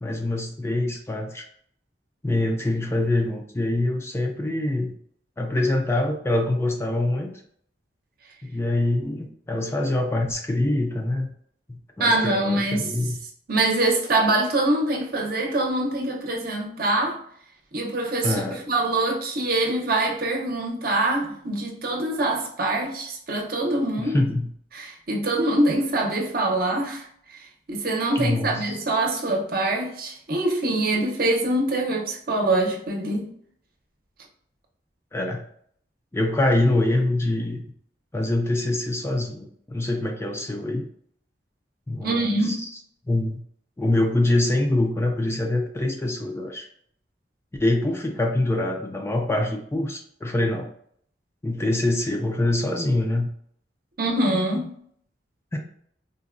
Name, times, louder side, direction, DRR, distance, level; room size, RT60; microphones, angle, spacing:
voice 1, 0.0-1.4 2.2-4.9 5.4-7.3 8.4-11.3 11.7-13.2 18.2-18.6 24.0-24.5 28.2-28.8 35.1-35.4 36.1-37.6 38.1-40.8 41.9-42.6 43.1-43.4 43.8-46.7 47.6-50.7 51.4-53.3 55.5-55.6, left 1 dB, 15° left, 0.3 m, -24 dB
voice 2, 12.0-12.9 13.5-17.2 17.7-24.2 24.7-27.4 27.7-33.3 42.0-42.6 54.0-54.7, right 2 dB, 55° right, 0.7 m, -24 dB
3.8 x 2.2 x 2.4 m
head